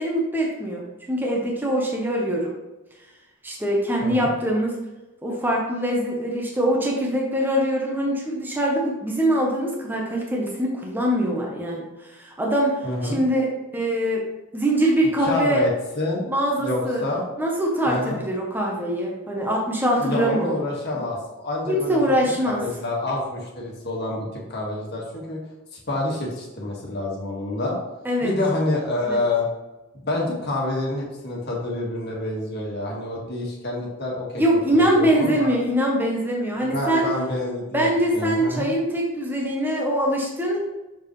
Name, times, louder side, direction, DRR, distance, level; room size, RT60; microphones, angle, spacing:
voice 1, 0.0-2.5 3.4-4.7 5.2-13.5 13.7-14.3 14.5-15.6 16.3-17.0 17.4-20.6 21.7-22.6 28.0-28.4 29.1-29.2 34.4-37.1 37.7-40.6, equal, 10° right, -2 dB, 0.9 m, -23 dB
voice 2, 12.8-13.2 15.2-15.7 16.0-16.3 16.6-17.3 17.8-18.2 20.0-22.0 22.4-25.4 25.7-27.8 28.2-29.5 30.0-35.5 36.6-38.7, left 2 dB, 50° left, -3 dB, 1.8 m, -27 dB
6.3 x 5.1 x 3.2 m, 1.1 s
head